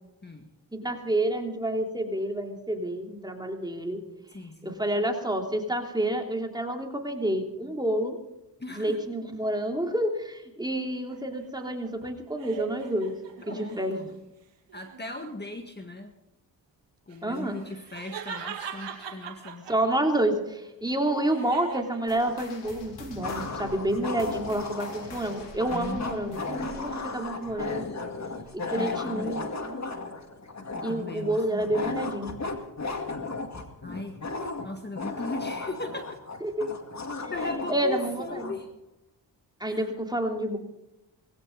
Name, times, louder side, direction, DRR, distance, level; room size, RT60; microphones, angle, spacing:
voice 1, 0.7-4.0 4.6-8.2 8.7-13.2 13.6-14.0 17.2-17.6 19.7-27.9 28.5-29.9 30.8-32.3 36.4-36.8 37.2-37.3 37.7-38.5 39.6-40.6, right 1 dB, 10° right, 2 dB, 3.1 m, -29 dB
voice 2, 4.3-4.8 8.6-9.0 13.5-14.1 14.7-16.1 17.1-19.7 25.7-26.7 28.7-29.5 30.7-31.8 33.8-34.2 34.6-36.2 37.3-38.7 39.6-40.0, left 2 dB, 25° left, 5 dB, 1.8 m, -38 dB
sound 1, 11.1-14.2 14.7-15.4 17.1-20.2 20.6-22.8, right 7 dB, 85° right, 2.2 m, -42 dB
sound 2, 22.1-28.9 29.2-29.5 30.1-30.2 31.0-31.1, left 3 dB, 75° left, 3.5 m, -45 dB
sound 3, 22.2-22.3 23.2-38.6, left 3 dB, 40° left, 2.2 m, -35 dB
20.0 x 16.5 x 4.0 m, 0.87 s
cardioid pair, 65°, 43 cm